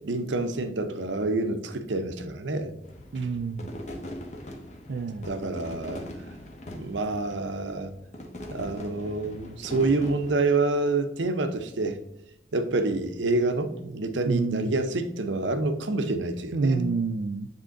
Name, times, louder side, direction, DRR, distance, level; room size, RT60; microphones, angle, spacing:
voice 1, 0.0-2.7 3.2-3.3 5.2-6.1 6.7-7.9 8.5-12.0 12.5-16.8, right 2 dB, 80° right, 0.7 m, -27 dB
sound 1, 2.8-10.3, left 1 dB, 40° left, 1.0 m, -41 dB
voice 2, 3.1-3.7 4.9-5.3 14.2-14.7 16.5-17.5, right 4 dB, 55° right, 0.4 m, -28 dB
7.5 x 3.7 x 3.7 m
head